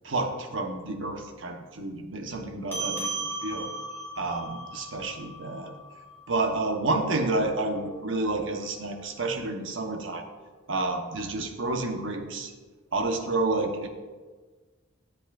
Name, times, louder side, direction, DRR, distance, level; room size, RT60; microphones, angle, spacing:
voice 1, 0.0-3.7 4.2-5.7 6.3-10.3 10.7-12.5 12.9-13.9, right 2 dB, 80° right, 4 dB, 1.0 m, -30 dB
sound 1, 2.7-7.5, right 2 dB, 10° left, 1.9 m, -37 dB
13.0 x 7.9 x 2.5 m, 1.4 s
head